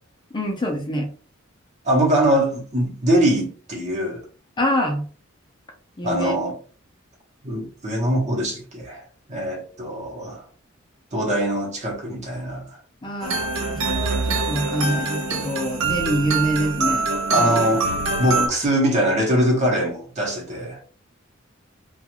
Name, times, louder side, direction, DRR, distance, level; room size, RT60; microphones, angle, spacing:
voice 1, 0.3-1.1 4.6-5.0 6.0-6.3 13.0-13.4 13.7-17.6, equal, 25° left, 0.5 m, -25 dB
voice 2, 1.8-4.2 6.0-6.6 7.4-9.0 9.3-10.4 11.1-12.6 17.3-17.8 18.2-20.8, right 1 dB, 35° right, 1.0 m, -22 dB
sound 1, 13.2-18.5, right 3 dB, 90° right, 0.6 m, -24 dB
2.5 x 2.3 x 2.9 m
head